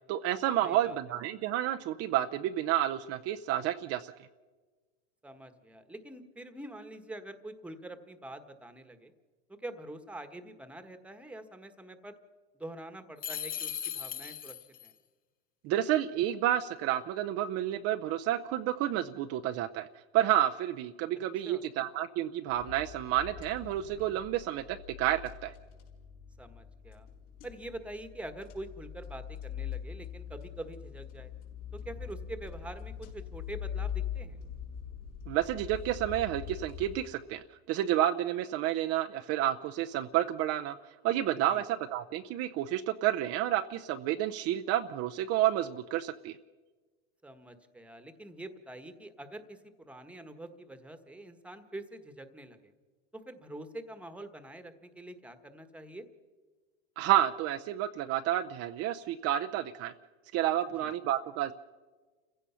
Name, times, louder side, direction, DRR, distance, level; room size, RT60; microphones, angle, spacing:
voice 1, 0.1-4.1 15.6-19.9 20.1-25.5 35.3-40.8 41.0-46.4 57.0-59.9 60.3-61.5, right 12 dB, 45° right, 7 dB, 0.7 m, -30 dB
voice 2, 0.6-1.0 5.2-9.1 9.5-12.2 12.5-14.6 14.8-14.9 21.3-21.6 26.4-27.1 27.4-31.3 31.7-34.4 41.5-41.6 47.2-52.7 53.1-56.0 60.8-60.9, right 1 dB, 5° right, 9 dB, 1.4 m, -45 dB
sound 1, 13.2-14.9, left 9 dB, 25° left, 0.8 m, -38 dB
sound 2, 22.5-37.0, left 8 dB, 65° left, 5.5 m, -42 dB
29.0 x 16.0 x 5.7 m, 1.4 s
supercardioid pair, 125°, 33 cm